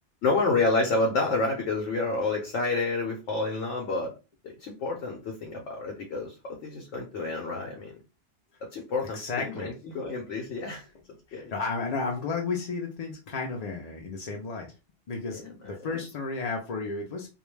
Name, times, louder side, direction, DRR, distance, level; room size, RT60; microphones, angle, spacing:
voice 1, 0.2-4.1 4.4-8.0 8.7-10.9 11.3-11.5 15.3-15.5, left 3 dB, 85° left, 1 dB, 0.9 m, -29 dB
voice 2, 9.1-9.7 11.3-14.7 15.1-17.3, left 4 dB, 55° left, 0 dB, 0.4 m, -33 dB
2.2 x 2.2 x 3.1 m, 0.30 s
omnidirectional pair, 1.2 m